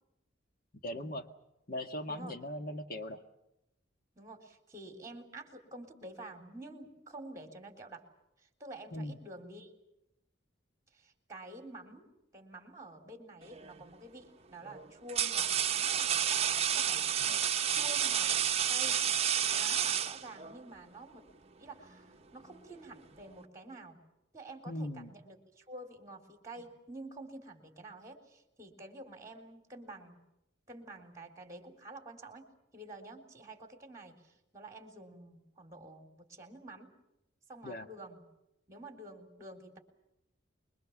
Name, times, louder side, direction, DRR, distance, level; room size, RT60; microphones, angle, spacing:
voice 1, 0.8-1.3 1.7-3.2 8.9-9.2 17.2-17.4 24.7-25.1 37.6-37.9, left 1 dB, 50° left, 7 dB, 1.8 m, -39 dB
voice 2, 2.1-2.4 4.2-8.1 8.6-9.7 10.9-17.1 17.7-18.4 18.7-19.1 19.5-21.2 21.6-24.0 24.3-30.2 30.7-36.9 37.5-38.2 38.7-39.8, right 2 dB, 15° right, 5 dB, 3.7 m, -49 dB
sound 1, 13.5-13.8 14.6-20.6, right 9 dB, 35° right, 0.9 m, -30 dB
25.5 x 22.5 x 7.3 m, 0.85 s
head